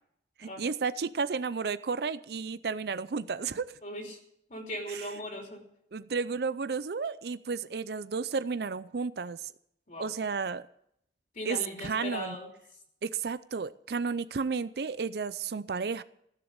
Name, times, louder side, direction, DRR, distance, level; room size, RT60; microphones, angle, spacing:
voice 1, 0.4-3.8 5.9-9.5 10.0-10.7 11.5-12.4 13.0-16.0, right 5 dB, 60° right, 15 dB, 0.5 m, -32 dB
voice 2, 3.8-4.2 4.5-5.6 9.9-10.1 11.3-12.5, left 1 dB, 45° left, 1 dB, 3.1 m, -38 dB
15.0 x 7.2 x 9.6 m, 0.73 s
head